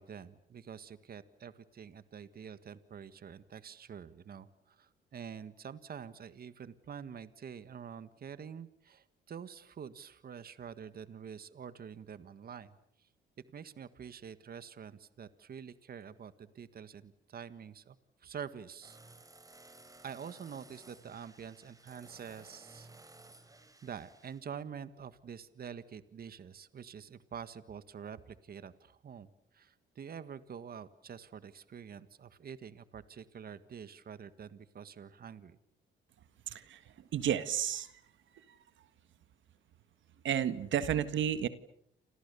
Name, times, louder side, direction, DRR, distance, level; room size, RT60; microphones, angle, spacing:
voice 1, 0.0-12.7 13.5-17.9 18.2-19.0 20.0-22.9 23.8-35.6, right 7 dB, 50° right, 13 dB, 1.6 m, -47 dB
sound 1, 18.8-24.4, right 2 dB, 15° right, 5.1 m, -57 dB
voice 2, 36.5-37.9 38.3-38.6 40.2-41.5, right 10 dB, 70° right, 12 dB, 1.8 m, -32 dB
29.0 x 28.0 x 7.0 m, 0.70 s
cardioid pair, 90°, 20 cm